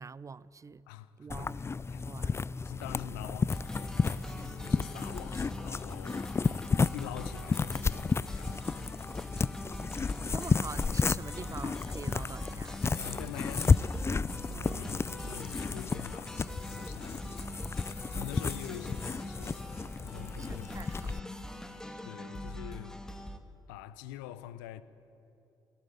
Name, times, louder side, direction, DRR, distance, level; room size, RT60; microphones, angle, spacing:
voice 1, 0.0-0.9 1.2-1.7 2.0-2.4 10.3-12.8 14.5-15.3 20.4-21.1, right 5 dB, 30° right, 0.5 m, -45 dB
voice 2, 0.9-2.1 2.5-6.2 6.9-9.2 13.0-13.8 14.4-17.9 18.1-19.6 20.0-21.3 22.0-23.0 23.7-24.8, left 12 dB, 75° left, 0.7 m, -46 dB
sound 1, 1.3-21.2, left 4 dB, 25° left, 0.4 m, -32 dB
sound 2, 3.5-23.4, equal, 5° left, 1.7 m, -43 dB
17.5 x 17.0 x 8.9 m
hypercardioid pair, 45°, 11 cm